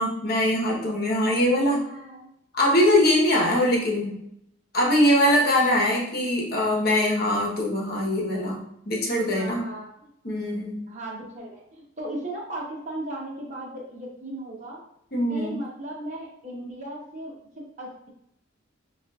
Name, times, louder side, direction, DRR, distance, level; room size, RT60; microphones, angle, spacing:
voice 1, 0.0-1.8 2.5-4.2 4.7-9.7 10.2-10.8 15.1-15.6, left 1 dB, 50° left, -2 dB, 1.1 m, -22 dB
voice 2, 1.2-1.6 1.8-2.3 9.3-9.9 10.9-14.8 15.3-18.1, right 1 dB, 35° right, -4 dB, 1.0 m, -37 dB
7.2 x 2.5 x 2.4 m, 0.77 s
head